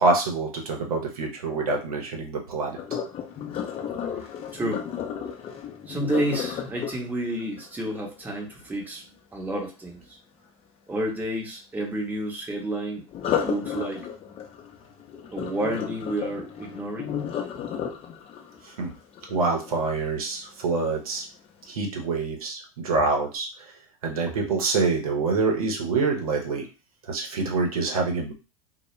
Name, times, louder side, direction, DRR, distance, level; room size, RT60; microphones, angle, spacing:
voice 1, 0.0-2.8 18.6-18.9 19.3-21.2 21.7-23.7 24.0-26.7 27.1-28.3, right 3 dB, 75° right, 2 dB, 0.7 m, -26 dB
Sink (filling or washing), 2.8-8.7 13.1-20.1 20.6-21.0 21.5-21.6, left 8 dB, 30° left, 0.6 m, -33 dB
voice 2, 4.2-4.8 5.9-9.1 9.3-10.2 10.9-13.0 13.4-14.1 15.3-17.2 24.3-24.4, right 1 dB, 10° right, 0 dB, 0.7 m, -30 dB
2.1 x 2.1 x 3.0 m, 0.31 s
hypercardioid pair, 90°, 18 cm